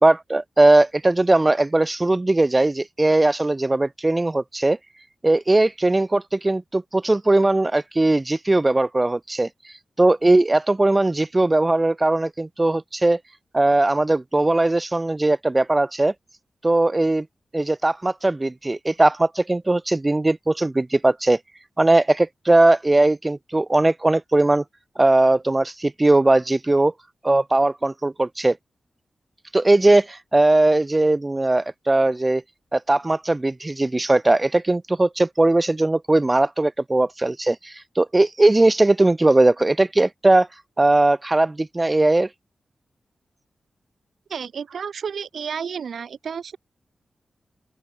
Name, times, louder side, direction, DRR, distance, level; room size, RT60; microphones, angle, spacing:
voice 1, 0.0-4.8 5.2-9.5 10.0-13.2 13.5-16.1 16.6-17.3 17.5-21.4 21.8-24.6 25.0-26.9 27.2-28.6 29.5-32.4 32.7-40.5 40.8-42.3, right 2 dB, 15° right, 1.4 m, -19 dB
voice 2, 44.3-46.6, right 6 dB, 75° right, 1.5 m, -31 dB
open air
wide cardioid pair, 170°, 0 cm